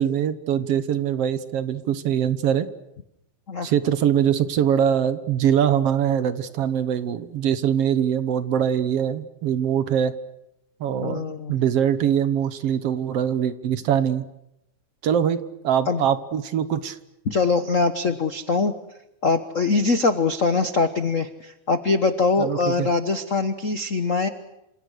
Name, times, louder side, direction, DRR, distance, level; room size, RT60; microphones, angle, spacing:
voice 1, 0.0-2.7 3.6-10.1 10.8-11.2 11.5-14.2 15.0-17.0 22.4-22.9, right 9 dB, 60° right, 13 dB, 2.0 m, -23 dB
voice 2, 11.0-11.5 15.9-16.0 17.3-18.7 19.2-24.3, left 4 dB, 80° left, 10 dB, 0.7 m, -22 dB
29.0 x 27.0 x 6.5 m, 0.84 s
omnidirectional pair, 3.4 m